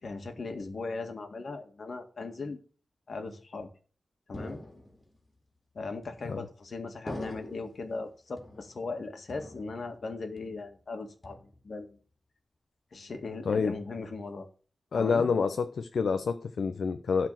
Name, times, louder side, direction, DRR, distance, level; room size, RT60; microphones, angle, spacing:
voice 1, 0.0-2.6 3.1-3.7 4.3-4.6 5.8-12.0 12.9-14.5 14.9-15.3, left 3 dB, 65° left, 1.8 m, -38 dB
sound 1, 4.3-5.2 6.0-6.5 7.1-7.9 8.4-9.0 9.3-10.1 10.4-10.8 11.2-11.8, left 1 dB, 35° left, 2.5 m, -44 dB
voice 2, 13.4-13.8 14.9-17.3, left 5 dB, 85° left, 0.6 m, -28 dB
12.0 x 4.2 x 7.6 m
wide cardioid pair, 95°, 0 cm